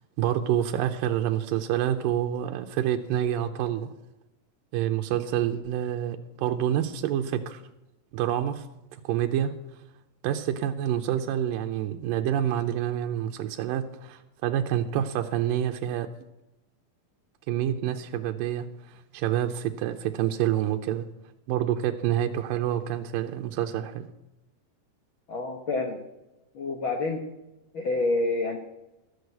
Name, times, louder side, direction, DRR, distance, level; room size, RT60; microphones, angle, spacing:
voice 1, 0.2-3.9 4.7-7.6 8.1-8.7 8.9-9.5 10.2-16.1 17.5-21.1 21.5-24.1, right 11 dB, 85° right, 4 dB, 2.3 m, -27 dB
voice 2, 25.3-26.0 26.5-27.2 27.7-28.6, left 2 dB, 70° left, 4 dB, 1.1 m, -28 dB
13.0 x 6.4 x 7.9 m, 0.97 s
omnidirectional pair, 4.0 m